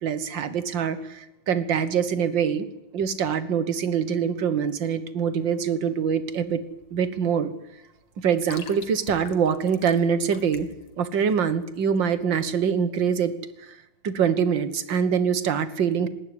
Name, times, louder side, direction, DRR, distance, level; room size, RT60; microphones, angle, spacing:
voice 1, 0.0-2.7 2.9-6.6 6.9-7.5 8.2-10.7 11.0-13.3 13.6-13.8 14.0-16.1, right 7 dB, 65° right, 12 dB, 2.0 m, -24 dB
sound 1, 5.9-12.6, left 6 dB, 80° left, 2.5 m, -47 dB
19.5 x 15.5 x 9.6 m, 0.92 s
omnidirectional pair, 2.3 m